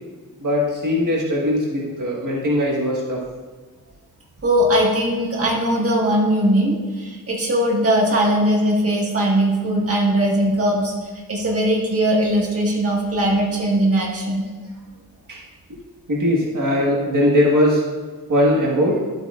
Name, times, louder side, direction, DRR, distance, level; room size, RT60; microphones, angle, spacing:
voice 1, 0.4-3.2 15.3-15.4 16.1-17.8 18.3-19.0, left 1 dB, 55° right, -4 dB, 1.5 m, -20 dB
voice 2, 4.4-14.5, right 1 dB, 40° right, -3 dB, 1.6 m, -20 dB
11.5 x 8.0 x 2.5 m, 1.3 s
wide cardioid pair, 160°, 37 cm